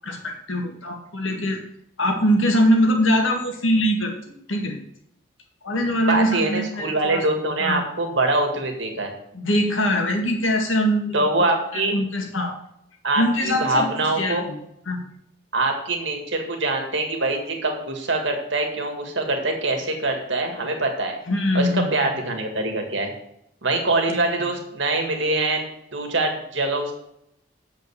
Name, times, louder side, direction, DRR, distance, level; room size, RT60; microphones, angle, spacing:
voice 1, 0.0-1.6 2.0-4.1 4.5-4.8 5.6-7.2 7.6-7.8 9.3-11.3 11.7-12.5 13.2-14.6 14.9-15.0 21.3-21.9 24.1-24.2, equal, 85° left, 3 dB, 1.8 m, -22 dB
voice 2, 6.0-9.1 11.1-11.9 13.0-14.5 15.5-21.2 21.5-23.1 23.6-26.9, right 2 dB, 75° right, 3 dB, 1.9 m, -24 dB
7.6 x 5.3 x 7.1 m, 0.78 s
head